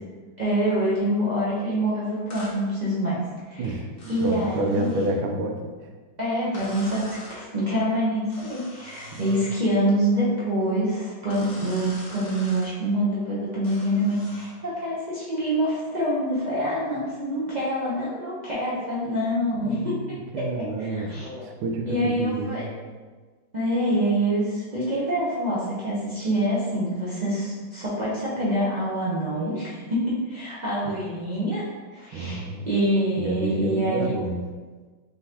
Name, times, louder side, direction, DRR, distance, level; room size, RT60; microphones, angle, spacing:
voice 1, 0.4-3.2 3.5-3.6 4.1-5.0 6.2-20.0 20.8-21.4 21.9-22.7 23.5-31.7 31.9-34.1, equal, 50° right, -9 dB, 0.5 m, -26 dB
sound 1, 2.3-2.6 4.0-5.2 6.5-7.4 8.3-9.6 11.3-12.7 13.6-14.6, left 1 dB, 75° left, 0.5 m, -43 dB
voice 2, 4.2-5.9 9.1-9.3 17.5-17.6 19.5-22.7 30.8-31.0 32.1-32.7 33.2-34.4, right 2 dB, 90° right, 3 dB, 1.4 m, -29 dB
4.1 x 3.8 x 2.8 m, 1.4 s
omnidirectional pair, 2.2 m